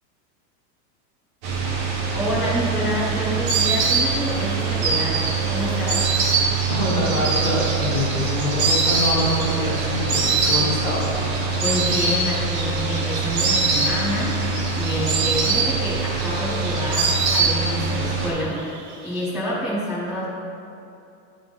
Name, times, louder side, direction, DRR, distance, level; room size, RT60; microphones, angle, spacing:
sound 1, 1.4-18.3, right 5 dB, 35° right, 1.0 m, -25 dB
voice 1, 2.1-6.0 11.6-14.3 14.7-18.6 19.0-20.2, equal, ahead, -14 dB, 1.0 m, -27 dB
Insect, 2.3-18.0 18.3-19.1, right 4 dB, 55° right, 1.2 m, -25 dB
voice 2, 6.7-11.1, left 1 dB, 20° left, -8 dB, 1.1 m, -25 dB
10.0 x 3.8 x 4.0 m, 2.6 s
supercardioid pair, 180°, 50 cm